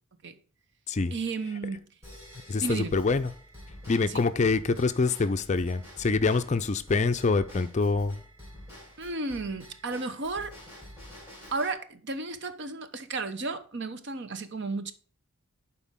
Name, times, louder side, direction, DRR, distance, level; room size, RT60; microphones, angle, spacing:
voice 1, 1.1-1.8 2.6-3.0 4.1-4.2 9.0-10.6 11.5-14.9, right 3 dB, 50° right, 0.8 m, -33 dB
Drum kit / Drum / Bell, 2.0-11.7, equal, 10° right, 3.2 m, -48 dB
voice 2, 2.5-3.3 3.9-8.1, left 4 dB, 30° left, 0.4 m, -25 dB
11.5 x 4.4 x 3.6 m
head